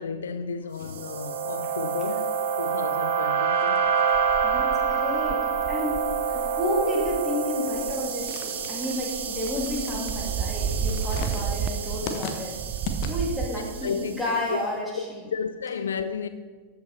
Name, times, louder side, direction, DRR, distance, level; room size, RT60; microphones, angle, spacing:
voice 1, 0.0-3.9 13.5-14.6 14.9-16.3, left 6 dB, 70° left, 0.4 m, -33 dB
sound 1, 0.8-14.2, right 7 dB, 55° right, 1.1 m, -28 dB
sound 2, 3.9-7.2 7.7-7.9 8.2-12.2 12.5-13.5, right 7 dB, 35° right, 0.5 m, -32 dB
voice 2, 4.4-12.5 13.1-15.2, left 1 dB, ahead, 2.8 m, -31 dB
sound 3, 7.6-13.5, left 4 dB, 45° left, 1.1 m, -38 dB
13.5 x 5.6 x 4.2 m
figure-of-eight pair, 90°, 0 cm